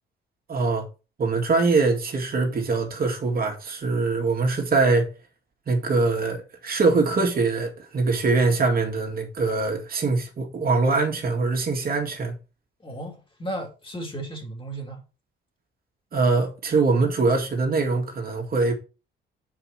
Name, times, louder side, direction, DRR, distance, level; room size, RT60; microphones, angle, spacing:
voice 1, 0.5-0.9 1.2-5.1 5.7-12.3 16.1-18.7, right 3 dB, 50° right, 2.1 m, -23 dB
voice 2, 12.8-15.0, right 1 dB, 25° left, 2.5 m, -35 dB
5.8 x 5.0 x 4.4 m
cardioid pair, 90°, 20 cm